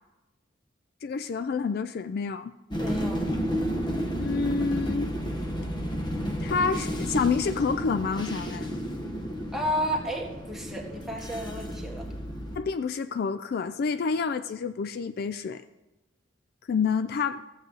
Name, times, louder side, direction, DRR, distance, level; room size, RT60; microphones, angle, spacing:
voice 1, 1.0-2.5 4.2-5.1 6.4-8.8 12.6-15.6 16.7-17.4, left 5 dB, 55° left, 11 dB, 0.3 m, -28 dB
sound 1, 2.7-12.6, equal, 25° left, 1.0 m, -32 dB
voice 2, 2.8-3.2 9.5-12.1, equal, ahead, -1 dB, 1.5 m, -32 dB
14.0 x 7.6 x 3.9 m, 1.1 s
head